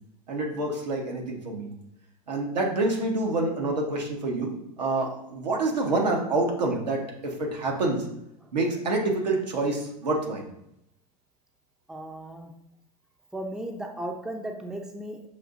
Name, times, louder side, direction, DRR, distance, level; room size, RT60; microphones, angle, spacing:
voice 1, 0.3-1.7 2.3-4.5 4.8-8.1 8.5-10.5, right 2 dB, 85° right, 0 dB, 1.0 m, -27 dB
voice 2, 11.9-12.5 13.3-15.3, right 1 dB, 5° right, 2 dB, 0.4 m, -36 dB
6.2 x 2.6 x 2.5 m, 0.79 s
hypercardioid pair, 95°, 21 cm